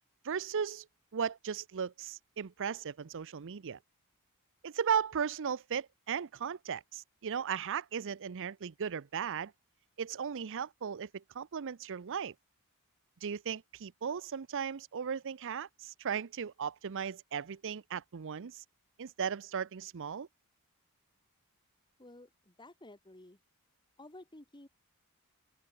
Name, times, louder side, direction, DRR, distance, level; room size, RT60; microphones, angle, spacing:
voice 1, 0.2-0.9 1.1-3.8 4.6-9.5 10.0-12.3 13.2-18.6 19.0-20.3, right 7 dB, 60° right, 0.6 m, -36 dB
voice 2, 22.0-23.4 24.0-24.7, left 1 dB, 20° left, 2.3 m, -53 dB
open air
head